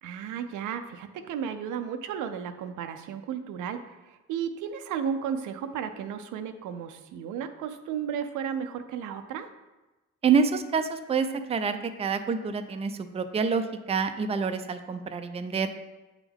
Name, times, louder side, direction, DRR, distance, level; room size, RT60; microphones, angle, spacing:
voice 1, 0.0-9.5, right 7 dB, 85° right, 8 dB, 0.5 m, -34 dB
voice 2, 10.2-15.7, right 5 dB, 20° right, 8 dB, 0.4 m, -27 dB
8.1 x 3.5 x 3.5 m, 1.1 s
cardioid pair, 90°, 30 cm